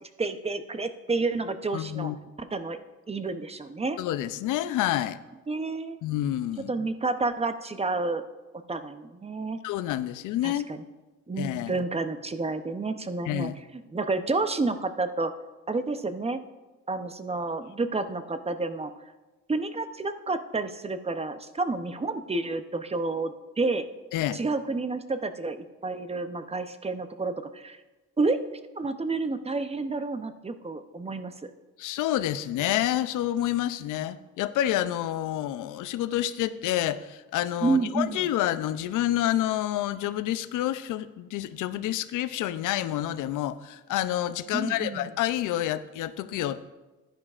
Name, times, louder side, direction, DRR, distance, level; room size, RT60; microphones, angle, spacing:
voice 1, 0.2-2.1 2.4-2.8 3.1-4.0 5.5-6.0 6.7-8.2 8.7-9.6 10.4-10.8 11.3-13.5 13.9-15.3 15.7-16.4 16.9-18.9 19.5-23.9 24.3-27.8 28.2-28.4 28.7-31.5 37.6-38.3 44.5-45.1, right 3 dB, 20° right, 9 dB, 0.7 m, -30 dB
voice 2, 1.7-2.2 4.0-5.2 6.0-6.7 9.6-10.7 11.4-11.8 13.3-13.5 24.1-24.4 31.8-46.6, left 13 dB, 85° left, 13 dB, 0.5 m, -28 dB
14.5 x 10.5 x 2.4 m, 1.2 s
cardioid pair, 90°, 30 cm